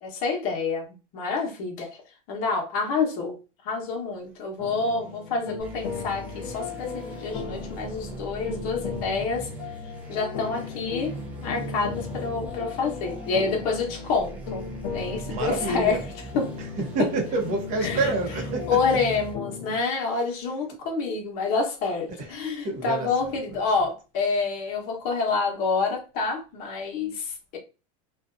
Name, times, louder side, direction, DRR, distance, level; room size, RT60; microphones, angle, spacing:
voice 1, 0.0-0.9 1.1-1.9 2.3-3.4 3.6-9.5 10.1-14.7 14.9-16.0 16.3-16.5 17.8-18.1 18.7-27.6, left 4 dB, 45° left, 0.8 m, -28 dB
sound 1, 4.6-19.8, left 6 dB, 90° left, 0.6 m, -37 dB
sound 2, 5.6-19.3, right 2 dB, 10° right, 0.5 m, -40 dB
voice 2, 15.3-16.0 16.8-18.8 22.2-23.1, right 2 dB, 40° right, 0.8 m, -28 dB
2.5 x 2.3 x 2.4 m
supercardioid pair, 155°, 19 cm